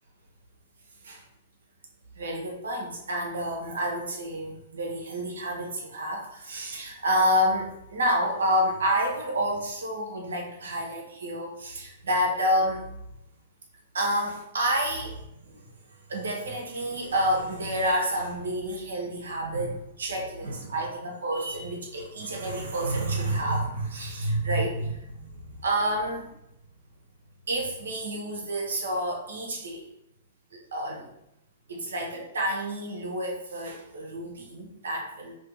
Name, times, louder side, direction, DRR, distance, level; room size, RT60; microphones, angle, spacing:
voice 1, 2.1-12.8 13.9-15.6 16.1-26.3 27.5-29.8 30.5-31.1 31.7-35.4, equal, 75° right, -1 dB, 1.0 m, -29 dB
3.0 x 2.8 x 3.9 m, 0.82 s
hypercardioid pair, 110°, 0 cm